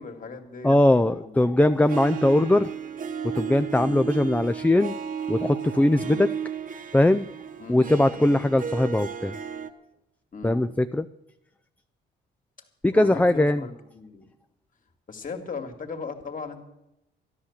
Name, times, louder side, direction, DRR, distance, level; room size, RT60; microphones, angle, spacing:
voice 1, 0.0-1.4 3.7-4.0 6.0-6.3 7.6-7.9 8.2-8.4 10.3-10.6 12.9-14.3 15.1-16.6, left 4 dB, 40° left, 5 dB, 2.4 m, -38 dB
voice 2, 0.6-2.7 3.3-4.9 5.3-6.3 6.9-7.3 7.7-9.3 10.4-11.1 12.8-13.6, left 1 dB, 5° left, 10 dB, 0.5 m, -20 dB
Harp, 1.9-9.7, right 7 dB, 45° right, 1.2 m, -34 dB
13.0 x 11.0 x 7.4 m, 0.86 s
cardioid pair, 90°, 20 cm